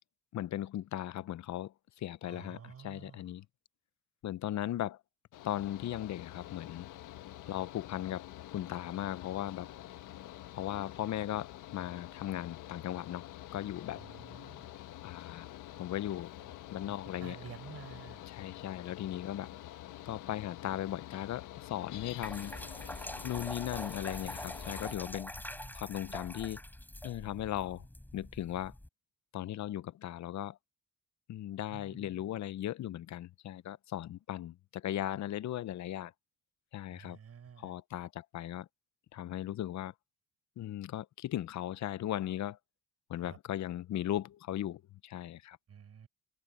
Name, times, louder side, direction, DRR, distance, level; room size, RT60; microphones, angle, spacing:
voice 1, 0.3-3.5 4.2-5.0 5.4-6.9 7.5-8.3 8.5-9.7 10.5-14.1 15.0-15.5 15.8-16.3 16.7-17.4 18.3-19.5 20.1-22.5 23.2-25.3 25.7-26.6 27.0-27.8 28.1-28.7 29.3-30.6 31.3-36.1 36.7-37.2 37.6-38.7 39.1-39.9 40.6-42.6 43.1-45.6, left 12 dB, 65° left, 0.8 m, -37 dB
voice 2, 2.2-3.3 7.4-7.5 13.9-14.7 16.7-16.9 17.2-18.2 18.5-18.6 25.4-25.8 31.7-32.2 36.9-37.7 43.2-43.4 45.7-46.1, right 7 dB, 50° right, 7.9 m, -51 dB
Mechanical fan, 5.3-25.0, left 14 dB, 90° left, 1.5 m, -48 dB
sound 1, 21.9-28.9, left 1 dB, 5° left, 3.9 m, -44 dB
cardioid pair, 90°, 30 cm